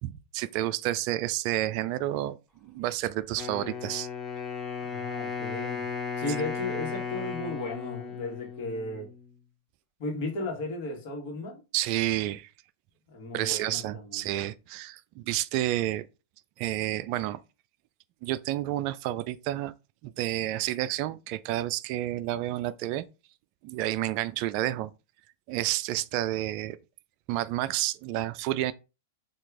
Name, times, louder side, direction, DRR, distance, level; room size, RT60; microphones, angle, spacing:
voice 1, 0.0-4.1 11.7-12.5 13.3-16.1 16.6-17.4 18.2-19.7 20.0-23.1 23.6-24.9 25.5-26.8 27.3-28.7, right 14 dB, 45° right, 0.3 m, -30 dB
Wind instrument woodwind instrument, 3.4-9.3, left 6 dB, 15° left, 0.9 m, -35 dB
voice 2, 4.8-5.8 6.2-9.1 10.0-11.6 13.1-14.3, left 2 dB, 50° left, 1.7 m, -35 dB
4.5 x 2.8 x 3.6 m
figure-of-eight pair, 95°, 0 cm